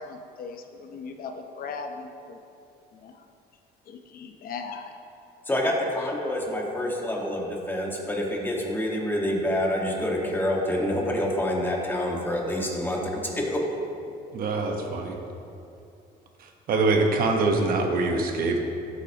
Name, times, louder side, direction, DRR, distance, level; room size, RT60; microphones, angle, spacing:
voice 1, 0.0-2.4 2.9-3.2 3.9-4.9 6.0-6.1, left 4 dB, 60° left, 4 dB, 0.9 m, -38 dB
voice 2, 5.5-13.6, left 1 dB, 10° left, -2 dB, 1.7 m, -27 dB
voice 3, 14.3-15.2 16.7-18.6, right 3 dB, 60° right, 3 dB, 1.2 m, -24 dB
13.5 x 8.3 x 3.0 m, 2.7 s
cardioid pair, 110°, 17 cm